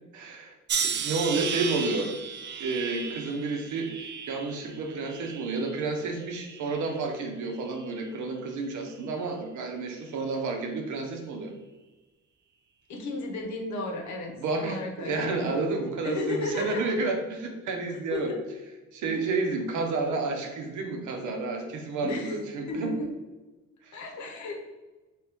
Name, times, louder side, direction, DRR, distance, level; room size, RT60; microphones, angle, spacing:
voice 1, 0.1-0.6 0.8-2.1 2.6-11.5 14.4-18.3 18.9-22.9 23.8-24.0, right 3 dB, 75° right, 3 dB, 0.8 m, -31 dB
sound 1, 0.7-5.8 6.3-7.0 7.7-8.0, right 6 dB, 40° right, 0.4 m, -34 dB
voice 2, 12.9-14.3 14.6-15.3 16.0-16.9 17.9-18.4 22.0-22.4 22.7-23.2 23.9-24.5, left 2 dB, 70° left, 1 dB, 1.0 m, -33 dB
3.1 x 3.0 x 3.5 m, 1.2 s
cardioid pair, 90°, 30 cm